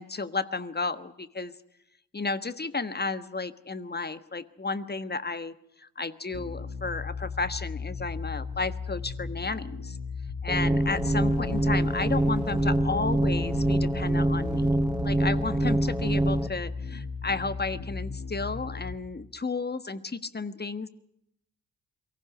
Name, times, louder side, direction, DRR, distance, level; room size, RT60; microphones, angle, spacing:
voice 1, 0.0-1.5 2.1-10.0 10.4-20.9, left 3 dB, 25° left, 14 dB, 1.4 m, -33 dB
sound 1, 6.3-19.0, left 5 dB, 65° left, 3.7 m, -36 dB
sound 2, 10.5-16.5, right 1 dB, 5° right, 1.0 m, -25 dB
sound 3, 10.8-16.4, left 7 dB, 85° left, 2.1 m, -44 dB
23.5 x 15.5 x 9.8 m, 0.77 s
hypercardioid pair, 40°, 41 cm